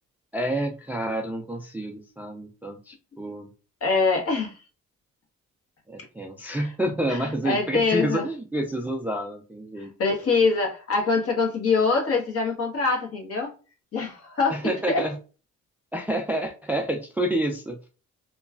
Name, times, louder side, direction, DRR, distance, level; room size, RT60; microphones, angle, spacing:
voice 1, 0.3-3.5 5.9-9.9 14.5-15.2 15.9-17.9, right 1 dB, 5° right, 3 dB, 0.3 m, -29 dB
voice 2, 3.8-4.6 7.1-8.2 9.8-13.5 13.9-15.0, left 4 dB, 50° left, 0 dB, 1.2 m, -24 dB
3.0 x 2.2 x 2.4 m, 0.35 s
cardioid pair, 90°, 30 cm